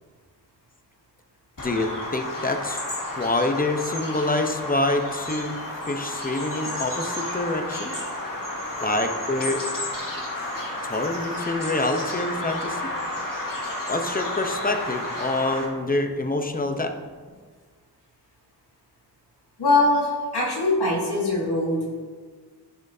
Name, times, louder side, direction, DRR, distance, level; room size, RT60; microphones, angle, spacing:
Bird vocalization bird call bird song, 1.6-15.6, left 1 dB, 50° left, 1.9 m, -31 dB
voice 1, 1.6-2.8 3.2-5.6 5.8-7.9 8.8-9.6 10.8-12.8 13.9-16.9, left 2 dB, 20° left, 6 dB, 0.8 m, -26 dB
voice 2, 19.6-21.9, left 2 dB, 70° left, -4 dB, 1.8 m, -22 dB
10.5 x 6.2 x 2.8 m, 1.5 s
cardioid pair, 40°, 41 cm